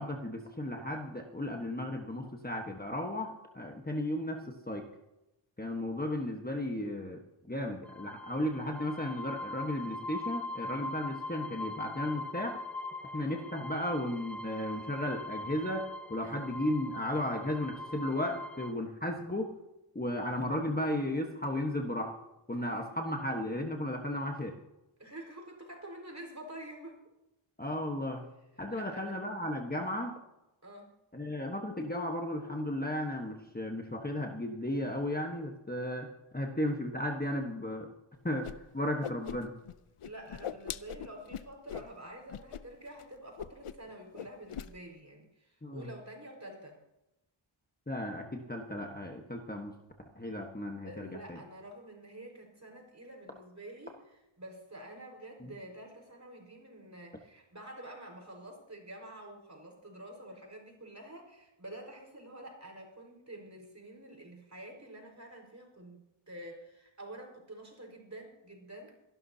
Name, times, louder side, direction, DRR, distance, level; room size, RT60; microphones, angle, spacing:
voice 1, 0.0-4.9 5.6-7.2 7.5-12.6 13.1-19.5 19.9-22.1 22.5-24.5 27.6-28.2 28.6-30.2 31.1-36.1 36.3-37.9 38.2-38.5 38.7-39.6 45.6-45.9 47.9-49.7 50.1-51.4 55.4-55.5, left 1 dB, 20° left, 2 dB, 1.3 m, -35 dB
sound 1, 7.8-18.7, left 2 dB, 5° left, 0.6 m, -42 dB
voice 2, 25.0-27.0 28.7-29.1 30.6-30.9 40.0-46.8 50.8-69.0, right 1 dB, 35° right, 1 dB, 5.0 m, -48 dB
Whoosh swoosh swish, 38.4-38.5 38.8-39.7 40.0-41.9 42.3-42.6 42.9-43.0 43.4-43.9 44.1-44.7, left 9 dB, 85° left, 0.7 m, -40 dB
27.0 x 12.0 x 2.8 m, 0.93 s
wide cardioid pair, 75°, 49 cm